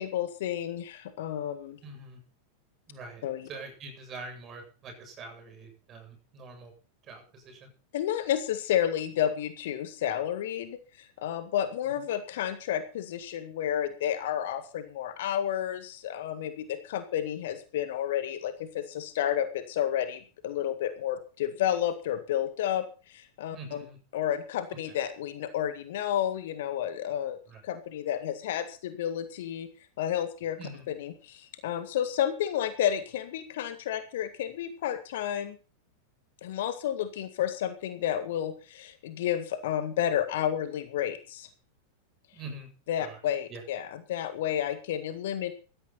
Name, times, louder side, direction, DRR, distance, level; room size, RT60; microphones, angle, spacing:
voice 1, 0.0-1.8 3.2-3.5 7.9-23.8 24.1-27.4 27.6-29.7 30.0-30.6 30.9-35.6 36.4-41.5 42.9-45.5, left 10 dB, 55° left, 10 dB, 1.8 m, -31 dB
voice 2, 1.8-2.2 2.9-6.7 7.0-7.7 23.5-24.0 27.5-27.6 30.6-30.9 42.3-42.7 43.0-43.2 43.5-43.6, right 3 dB, 30° right, 4 dB, 7.8 m, -44 dB
16.5 x 13.5 x 4.3 m, 0.36 s
figure-of-eight pair, 90°, 0 cm